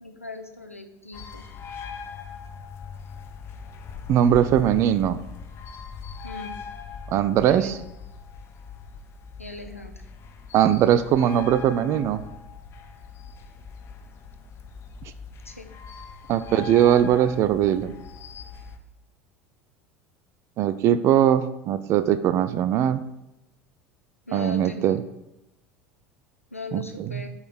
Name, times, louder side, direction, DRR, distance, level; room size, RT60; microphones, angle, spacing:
voice 1, 0.0-1.5 6.2-6.6 7.5-7.8 9.4-10.1 15.4-15.7 24.3-25.0 26.5-27.3, left 3 dB, 90° left, 6 dB, 0.5 m, -39 dB
sound 1, 1.1-18.8, left 6 dB, 35° left, 0.6 m, -41 dB
voice 2, 4.1-5.2 7.1-7.7 10.5-12.2 16.3-17.9 20.6-23.1 24.3-25.0 26.7-26.8 27.1-27.2, right 10 dB, 40° right, 13 dB, 0.4 m, -20 dB
4.8 x 4.1 x 4.7 m, 0.91 s
figure-of-eight pair, 70°, 7 cm